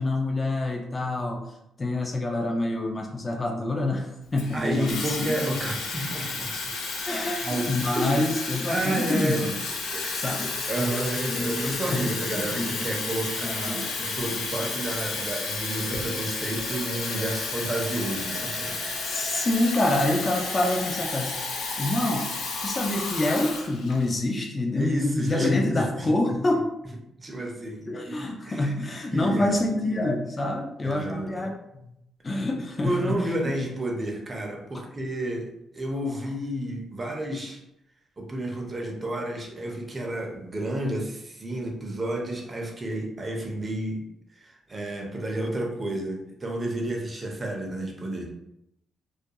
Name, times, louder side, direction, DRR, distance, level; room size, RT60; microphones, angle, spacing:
voice 1, 0.0-1.4 1.8-5.5 7.0-9.6 10.2-10.5 11.3-13.2 13.4-14.2 19.0-21.4 21.8-22.3 22.6-26.7 27.9-31.5 31.8-31.9 32.2-33.2, left 2 dB, 30° left, 1 dB, 0.4 m, -27 dB
Water tap faucet / Fill (with liquid), 4.4-24.1, left 3 dB, 85° left, 0.5 m, -32 dB
voice 2, 4.5-6.7 7.4-8.1 8.7-9.5 9.9-10.4 10.7-19.0 24.8-26.1 27.2-28.7 29.1-29.6 30.8-31.3 32.8-37.6 38.2-44.0 44.3-48.3, right 1 dB, 30° right, 1 dB, 0.6 m, -31 dB
2.4 x 2.2 x 2.8 m, 0.82 s
cardioid pair, 75°, 0 cm